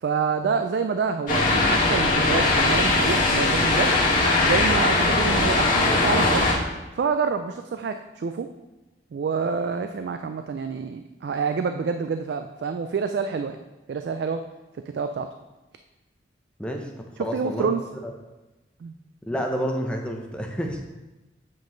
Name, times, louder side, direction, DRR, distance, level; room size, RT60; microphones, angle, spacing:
voice 1, 0.0-3.9 4.4-6.5 7.0-8.5 9.1-13.6 13.9-14.4 14.9-15.3 17.2-17.8 18.8-18.9, right 5 dB, 65° right, 7 dB, 0.3 m, -27 dB
sound 1, 1.3-6.5, left 2 dB, 45° left, 1.7 m, -20 dB
voice 2, 16.6-17.7 19.3-20.8, equal, 5° left, 2 dB, 0.6 m, -29 dB
7.5 x 5.1 x 3.8 m, 1.1 s
head